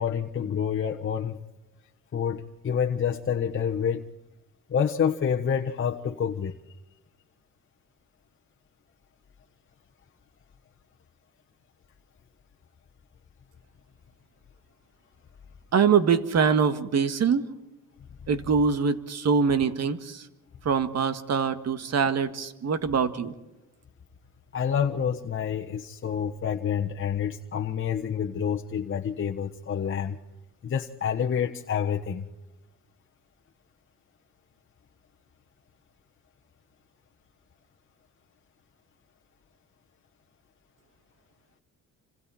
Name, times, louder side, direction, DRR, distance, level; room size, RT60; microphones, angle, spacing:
voice 1, 0.0-1.4 2.1-4.0 4.7-6.5 24.5-30.2 30.6-32.3, left 7 dB, 40° left, 1.2 m, -28 dB
voice 2, 15.7-17.5 18.3-20.2 20.7-23.3, right 6 dB, 60° right, 1.9 m, -24 dB
29.0 x 26.0 x 4.4 m
cardioid pair, 90°, 30 cm